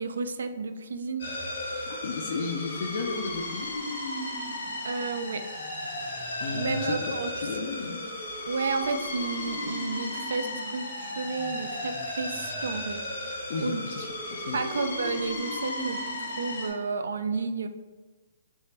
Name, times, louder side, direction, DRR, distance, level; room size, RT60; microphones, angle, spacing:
voice 1, 0.0-1.3 4.8-5.5 6.5-7.3 8.4-13.1 13.6-13.8 14.5-17.7, right 4 dB, 80° right, 10 dB, 0.3 m, -32 dB
sound 1, 1.2-16.7, left 1 dB, 80° left, 1.2 m, -35 dB
voice 2, 1.9-3.7 6.4-7.0 7.4-8.0 13.3-14.6, left 4 dB, 60° left, 2 dB, 0.4 m, -34 dB
3.4 x 3.1 x 2.8 m, 1.3 s
hypercardioid pair, 150°, 0 cm